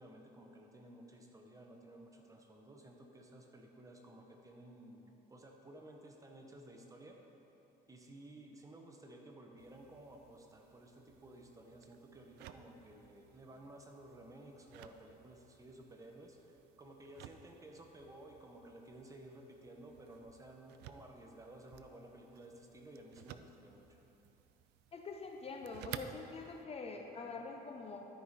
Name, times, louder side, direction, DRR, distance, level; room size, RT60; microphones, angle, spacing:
voice 1, 0.0-7.2 7.9-24.0, right 1 dB, 20° right, 2 dB, 0.9 m, -55 dB
sound 1, 9.6-26.6, right 11 dB, 85° right, 0.4 m, -56 dB
voice 2, 24.9-28.1, left 4 dB, 35° left, 3 dB, 0.7 m, -45 dB
12.5 x 5.1 x 4.1 m, 3.0 s
cardioid pair, 110°, 17 cm